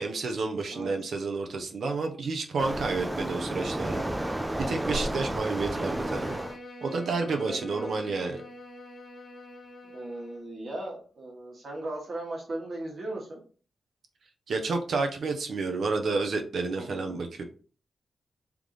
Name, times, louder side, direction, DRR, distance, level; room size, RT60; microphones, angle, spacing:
voice 1, 0.0-4.0 4.7-6.4 6.8-8.4 14.5-17.4, right 3 dB, 65° right, 4 dB, 0.7 m, -30 dB
Waves surf, 2.6-6.6, right 1 dB, 10° right, 0.3 m, -31 dB
Bowed string instrument, 5.5-10.5, left 1 dB, 45° left, 0.8 m, -46 dB
voice 2, 7.3-7.9 9.9-13.4 16.7-17.2, right 1 dB, 45° right, -1 dB, 1.4 m, -37 dB
3.8 x 3.5 x 3.2 m, 0.40 s
wide cardioid pair, 165°, 0 cm